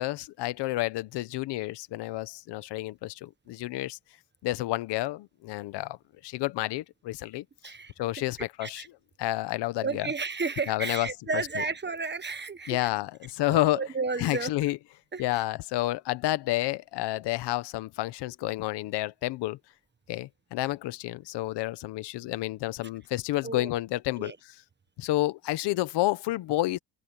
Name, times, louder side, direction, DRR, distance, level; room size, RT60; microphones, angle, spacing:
voice 1, 0.0-4.0 4.4-6.0 6.2-7.7 8.0-8.8 9.2-10.1 10.7-11.1 11.3-11.6 12.7-13.8 14.2-14.8 15.2-19.6 20.1-24.6 25.0-26.8, left 17 dB, 90° left, 1.1 m, -30 dB
voice 2, 9.8-12.9 13.5-14.5 15.1-15.2 23.4-23.7 24.2-24.3, right 4 dB, 25° right, 1.5 m, -32 dB
open air
cardioid pair, 85°, 40 cm